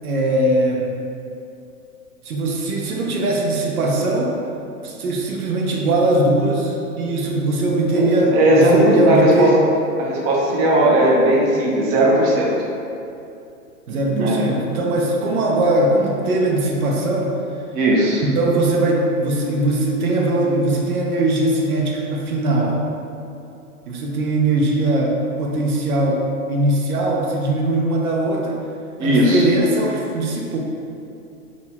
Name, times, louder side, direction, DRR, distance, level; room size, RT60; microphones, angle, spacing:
voice 1, 0.0-0.9 2.2-4.4 4.8-9.6 13.9-17.4 18.2-22.8 23.9-28.5 29.0-30.6, right 1 dB, 70° right, -1 dB, 0.8 m, -20 dB
voice 2, 8.3-9.5 10.0-12.5 13.9-14.4 17.7-18.2 29.0-29.4, right 1 dB, 30° right, -4 dB, 0.7 m, -17 dB
4.0 x 2.4 x 4.1 m, 2.6 s
hypercardioid pair, 110°, 45 cm